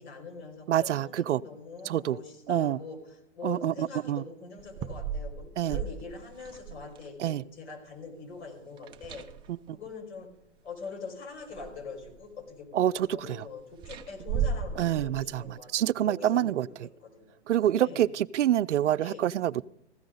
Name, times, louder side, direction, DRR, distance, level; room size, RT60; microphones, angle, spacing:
voice 1, 0.0-9.3 9.7-10.3 10.6-17.3 17.7-18.1 19.0-19.2, left 4 dB, 70° left, 5.5 m, -43 dB
voice 2, 0.7-1.4 1.9-2.2 2.5-2.8 3.4-4.2 5.6-5.8 7.2-7.4 12.7-13.4 14.8-15.4 15.7-16.9 17.5-19.6, right 11 dB, 85° right, 0.5 m, -26 dB
sound 1, 4.6-7.1 8.8-9.7 10.8-10.9 11.4-12.2 13.8-15.5, right 7 dB, 15° right, 0.4 m, -35 dB
15.5 x 13.5 x 3.9 m
hypercardioid pair, 130°, 35 cm